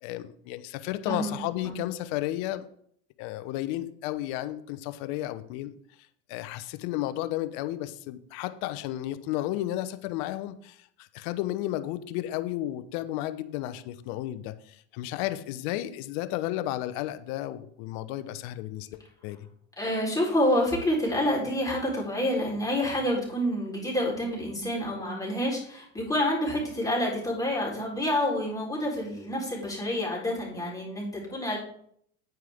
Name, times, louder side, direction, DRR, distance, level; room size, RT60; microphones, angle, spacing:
voice 1, 0.0-2.7 3.2-5.7 6.3-19.4, left 14 dB, 65° left, 12 dB, 1.0 m, -33 dB
voice 2, 19.8-31.6, left 1 dB, 10° left, -4 dB, 4.0 m, -28 dB
9.3 x 9.2 x 3.6 m, 0.66 s
hypercardioid pair, 90°, 34 cm